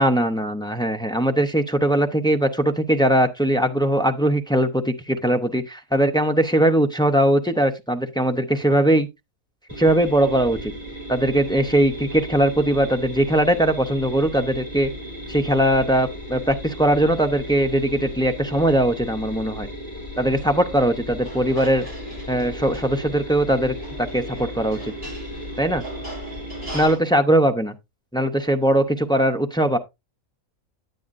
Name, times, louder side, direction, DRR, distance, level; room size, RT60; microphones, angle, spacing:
voice 1, 0.0-9.1 9.8-10.7 11.1-14.9 15.3-19.7 20.2-21.9 22.3-24.9 25.6-25.8 26.7-27.7 28.1-29.8, right 1 dB, 5° left, 0.3 m, -20 dB
sound 1, 9.7-26.9, equal, 25° right, 3.7 m, -35 dB
sound 2, 21.2-27.0, right 2 dB, 45° right, 7.7 m, -40 dB
9.6 x 9.2 x 2.5 m
omnidirectional pair, 1.5 m